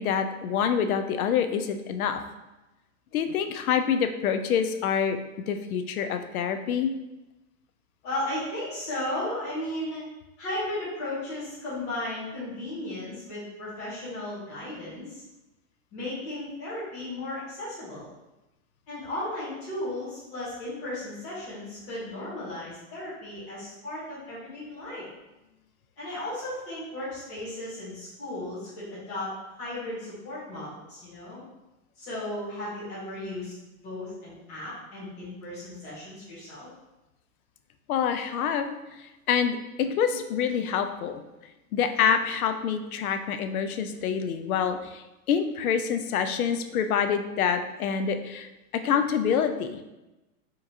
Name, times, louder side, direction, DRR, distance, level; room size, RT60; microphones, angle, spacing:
voice 1, 0.0-2.2 3.1-6.9 37.9-38.8 39.3-41.2 41.7-48.5 48.8-49.8, left 7 dB, 70° left, 8 dB, 0.5 m, -26 dB
voice 2, 8.0-10.0 10.4-15.2 15.9-18.1 18.9-25.1 26.0-29.3 29.6-31.4 32.0-33.5 33.8-36.7, left 1 dB, 20° left, -11 dB, 0.9 m, -35 dB
4.7 x 3.0 x 2.7 m, 1.0 s
supercardioid pair, 175°, 45 cm